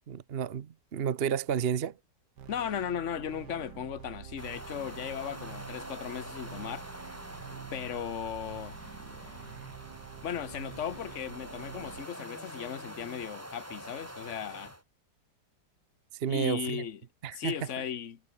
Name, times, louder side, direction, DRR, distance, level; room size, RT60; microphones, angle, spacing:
voice 1, 0.1-2.0 16.2-16.8 17.2-17.5, right 8 dB, 50° right, 0.8 m, -31 dB
sound 1, 2.4-12.1, right 8 dB, 70° right, 1.9 m, -47 dB
voice 2, 2.5-6.8 7.7-8.8 10.2-14.7 16.3-17.0 17.3-18.2, left 8 dB, 45° left, 1.4 m, -36 dB
sound 2, 4.4-14.8, right 1 dB, 10° right, 3.1 m, -46 dB
sound 3, 4.7-5.7 6.5-7.6 8.4-9.6 10.3-11.4 12.2-13.3, left 3 dB, 85° left, 6.9 m, -54 dB
omnidirectional pair, 2.0 m